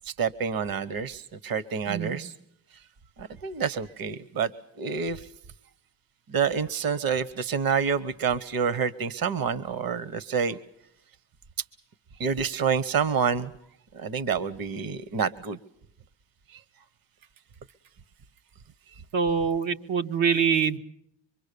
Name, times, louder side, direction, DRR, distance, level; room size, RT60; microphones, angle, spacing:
voice 1, 0.1-2.3 3.2-4.5 4.8-5.3 6.3-10.6 12.2-13.5 13.9-15.6, right 6 dB, 50° right, 18 dB, 1.0 m, -28 dB
voice 2, 19.1-20.8, right 6 dB, 80° right, 5 dB, 1.3 m, -24 dB
25.5 x 23.0 x 6.8 m, 0.73 s
cardioid pair, 110°, 44 cm